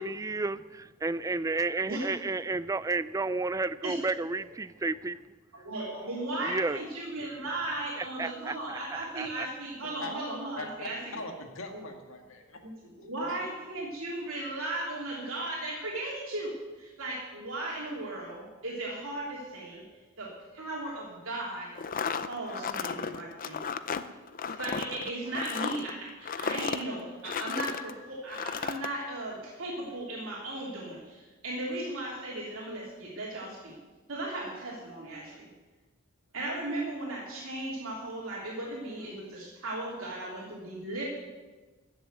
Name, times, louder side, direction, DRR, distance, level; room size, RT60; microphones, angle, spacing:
voice 1, 0.0-5.2 6.4-6.8 7.2-7.4 8.2-8.8 9.2-9.5, right 3 dB, 15° right, 16 dB, 0.3 m, -32 dB
voice 2, 5.5-11.2 11.7-11.9 12.6-12.7 13.0-19.8 20.2-21.7 22.3-23.6 24.5-33.7 34.1-35.5 36.3-41.0, right 1 dB, 70° right, -4 dB, 3.1 m, -36 dB
voice 3, 10.6-12.9 13.3-13.4, left 2 dB, 65° left, 4 dB, 2.0 m, -41 dB
sound 1, 21.8-27.9 28.3-28.9, left 6 dB, 40° left, 0.6 m, -34 dB
15.0 x 7.1 x 9.2 m, 1.3 s
head